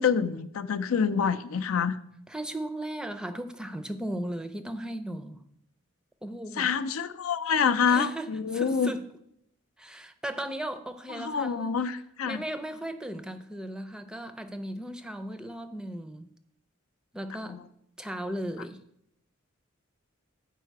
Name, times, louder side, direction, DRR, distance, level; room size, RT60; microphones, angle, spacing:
voice 1, 0.0-2.0 6.6-8.9 11.2-12.4 17.5-17.6, left 6 dB, 90° left, 0.5 m, -27 dB
voice 2, 2.3-5.4 6.2-6.7 7.9-9.1 9.8-11.7 12.2-16.3 17.1-17.7 18.0-18.8, right 1 dB, 5° right, 0.4 m, -36 dB
9.0 x 4.7 x 4.6 m
head